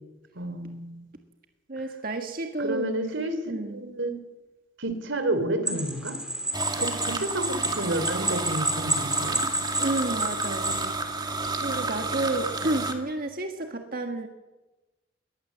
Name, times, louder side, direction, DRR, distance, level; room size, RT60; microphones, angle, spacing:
voice 1, 0.3-1.1 2.6-3.4 3.7-4.2 4.8-6.2 6.8-9.4, right 1 dB, 80° right, 10 dB, 3.2 m, -30 dB
voice 2, 1.7-2.9 3.5-3.9 9.8-11.3 11.6-14.3, right 2 dB, 50° right, 4 dB, 1.6 m, -31 dB
sound 1, 5.7-10.9, right 1 dB, 5° right, 3.0 m, -30 dB
sound 2, 6.5-12.9, right 3 dB, 20° right, 2.1 m, -31 dB
22.0 x 18.5 x 7.5 m, 1.1 s
head